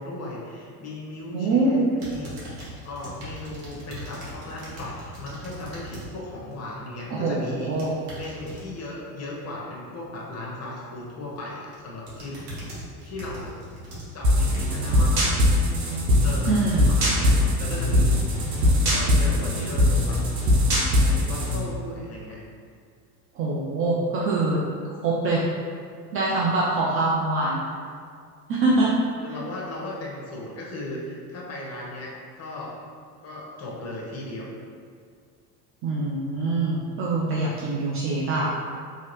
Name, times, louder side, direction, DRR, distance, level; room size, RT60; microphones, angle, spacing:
voice 1, 0.0-7.9 8.1-12.5 13.0-13.6 14.1-15.2 16.2-18.2 18.9-20.2 21.0-22.4 29.2-32.8 33.2-34.6, left 2 dB, 30° left, -4 dB, 0.9 m, -36 dB
voice 2, 1.3-1.9 7.1-7.9 16.5-16.9 23.4-24.6 25.0-25.4 26.1-27.6 28.5-28.9 35.8-38.5, right 2 dB, 30° right, -5 dB, 0.4 m, -24 dB
sound 1, 2.0-6.1 6.5-6.8 7.6-8.6 11.0-11.4 11.7-14.9 15.5-15.6, equal, 55° right, 1.3 m, -40 dB
sound 2, 14.2-21.6, left 1 dB, 85° right, 0.8 m, -21 dB
2.8 x 2.7 x 3.0 m, 2.2 s
hypercardioid pair, 80°, 48 cm